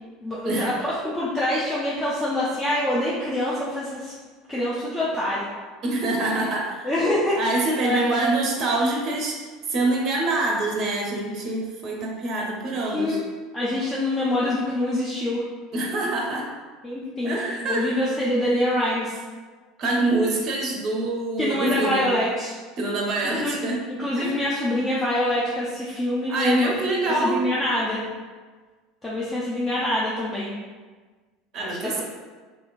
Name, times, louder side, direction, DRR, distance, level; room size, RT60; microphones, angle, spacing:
voice 1, 0.2-4.1 4.5-5.5 6.8-7.4 7.8-8.0 12.9-13.2 13.5-15.4 16.8-17.4 17.7-19.2 21.4-22.5 23.4-23.6 23.9-26.7 27.0-28.0 29.0-30.5 31.6-32.0, left 1 dB, 15° left, -7 dB, 0.5 m, -25 dB
voice 2, 5.8-6.9 7.3-9.4 9.7-13.2 15.7-16.5 17.2-18.1 19.8-22.1 22.8-23.8 24.1-24.3 26.3-27.4 31.5-32.0, right 2 dB, 45° right, -1 dB, 0.6 m, -25 dB
2.9 x 2.7 x 2.4 m, 1.4 s
figure-of-eight pair, 70°, 0 cm